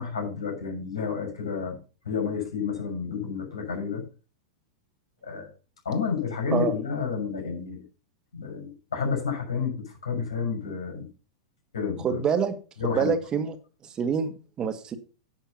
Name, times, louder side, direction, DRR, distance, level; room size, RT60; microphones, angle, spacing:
voice 1, 0.0-1.8 2.0-4.0 5.2-5.5 5.8-7.8 8.3-9.7 10.0-11.1 11.7-12.2 12.8-13.1, left 6 dB, 80° left, 1 dB, 6.5 m, -30 dB
voice 2, 12.0-12.6 12.9-13.6 14.0-15.0, right 6 dB, 25° right, 9 dB, 1.5 m, -26 dB
10.5 x 6.4 x 5.7 m, 0.36 s
hypercardioid pair, 100°, 3 cm